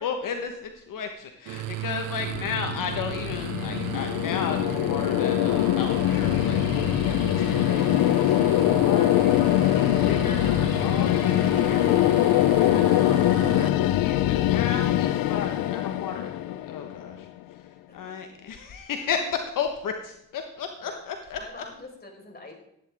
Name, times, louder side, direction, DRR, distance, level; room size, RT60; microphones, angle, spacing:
voice 1, 0.0-6.6 7.1-9.3 9.7-12.1 12.6-17.3 17.6-17.7 17.9-21.6, left 6 dB, 70° left, 5 dB, 1.3 m, -34 dB
sound 1, 1.5-13.7, right 15 dB, 90° right, 0.7 m, -36 dB
sound 2, 2.2-17.2, left 13 dB, 85° left, 0.6 m, -23 dB
voice 2, 21.3-22.5, left 3 dB, 30° left, 1 dB, 4.6 m, -46 dB
15.5 x 10.5 x 3.5 m, 0.78 s
cardioid pair, 75°, 34 cm